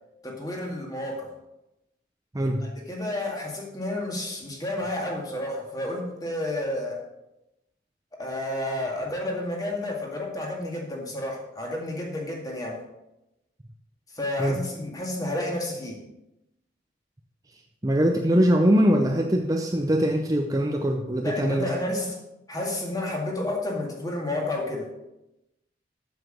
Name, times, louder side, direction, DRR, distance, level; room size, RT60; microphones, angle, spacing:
voice 1, 0.2-1.3 2.9-7.0 8.2-12.8 14.1-16.0 21.2-22.2 22.5-24.9, left 1 dB, 20° left, -1 dB, 2.0 m, -30 dB
voice 2, 2.3-2.8 14.4-14.6 17.5-21.7, equal, 20° right, 3 dB, 0.6 m, -22 dB
7.9 x 7.3 x 6.2 m, 0.93 s
head